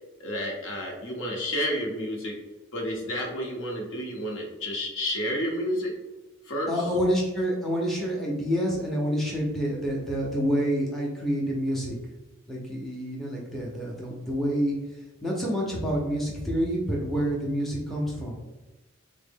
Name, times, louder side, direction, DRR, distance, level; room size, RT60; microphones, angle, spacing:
voice 1, 0.2-2.4 2.7-5.9 6.4-6.9, equal, 65° left, 0 dB, 0.8 m, -30 dB
voice 2, 6.7-12.0 12.5-14.7 15.2-18.4, equal, ahead, -4 dB, 0.5 m, -28 dB
3.6 x 2.0 x 3.4 m, 1.1 s
head